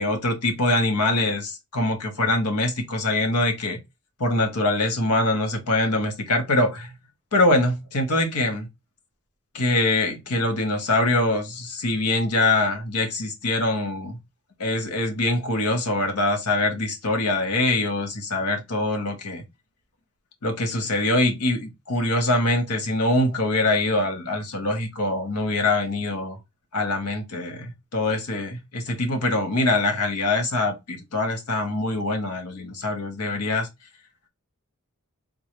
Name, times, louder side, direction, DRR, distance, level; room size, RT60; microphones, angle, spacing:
voice 1, 0.0-3.8 4.2-6.9 7.3-8.7 9.5-14.2 14.6-19.4 20.4-26.4 26.7-33.7, left 2 dB, 85° left, 0.9 m, -24 dB
3.8 x 2.2 x 2.9 m
head